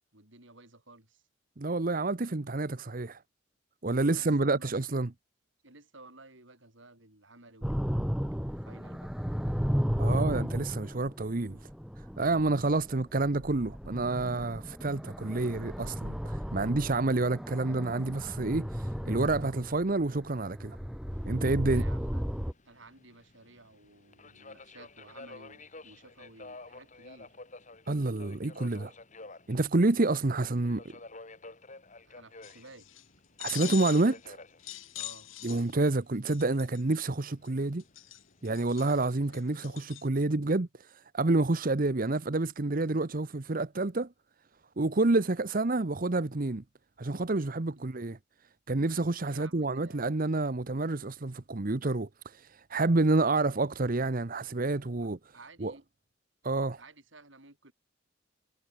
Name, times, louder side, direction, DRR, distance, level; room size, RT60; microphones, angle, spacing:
voice 1, 0.1-1.2 4.0-4.7 5.6-9.1 21.6-22.2 22.6-27.4 32.0-32.9 35.0-35.3 47.8-47.9 49.2-50.1 55.0-55.1 55.3-55.9 56.8-57.7, right 2 dB, 70° right, 6.4 m, -54 dB
voice 2, 1.6-3.2 3.8-5.1 10.0-11.7 12.2-20.8 21.3-21.8 27.9-28.9 29.5-30.8 33.4-34.4 35.4-37.8 38.4-44.1 44.8-46.6 47.0-48.2 48.7-55.2 55.6-55.7 56.4-56.8, right 2 dB, 45° right, 0.9 m, -28 dB
sound 1, 7.6-22.5, equal, 5° right, 1.3 m, -34 dB
Subway metro underground, 21.1-39.6, left 3 dB, 40° left, 3.8 m, -52 dB
sound 2, 32.4-33.0 33.4-34.2 34.6-35.9 36.3-36.8 37.5-37.6 37.8-40.0, left 14 dB, 80° left, 2.0 m, -42 dB
head